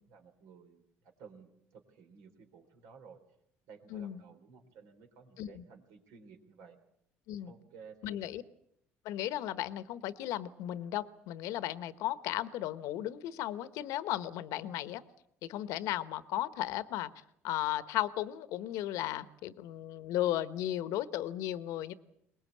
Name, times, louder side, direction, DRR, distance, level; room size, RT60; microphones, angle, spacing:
voice 1, 0.1-3.2 3.7-6.8 7.5-8.3, right 6 dB, 85° right, 6 dB, 3.9 m, -55 dB
voice 2, 3.9-4.2 5.4-5.6 7.3-7.5 8.0-8.4 9.0-15.0 15.4-17.1 17.4-21.9, left 13 dB, 80° left, 14 dB, 1.1 m, -35 dB
23.0 x 20.0 x 8.5 m, 0.75 s
cardioid pair, 90°, 5 cm